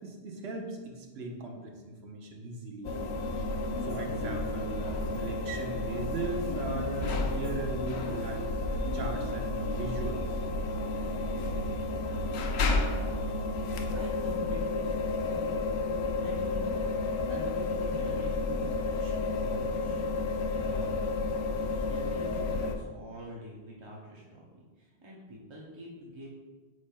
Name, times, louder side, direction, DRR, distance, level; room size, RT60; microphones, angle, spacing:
voice 1, 0.0-3.0 3.8-10.2, right 2 dB, 70° right, 1 dB, 1.2 m, -38 dB
sound 1, 2.8-22.8, left 3 dB, 75° left, 0.8 m, -31 dB
voice 2, 12.8-13.3 13.9-16.9 17.3-26.3, equal, 30° right, -5 dB, 0.8 m, -46 dB
7.9 x 5.7 x 2.3 m, 1.3 s
omnidirectional pair, 1.1 m